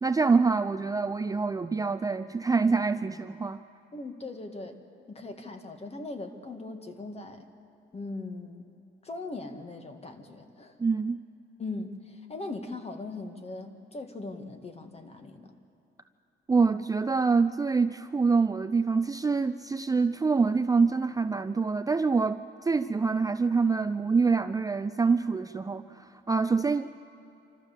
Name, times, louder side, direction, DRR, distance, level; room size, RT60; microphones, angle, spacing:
voice 1, 0.0-3.6 10.8-11.2 16.5-27.0, right 4 dB, 20° right, 10 dB, 0.4 m, -26 dB
voice 2, 3.9-4.8 5.1-7.5 7.9-8.7 9.0-10.8 11.6-15.5, left 2 dB, 30° left, 6 dB, 1.9 m, -39 dB
25.5 x 14.0 x 7.4 m, 2.8 s
cardioid pair, 90°, 20 cm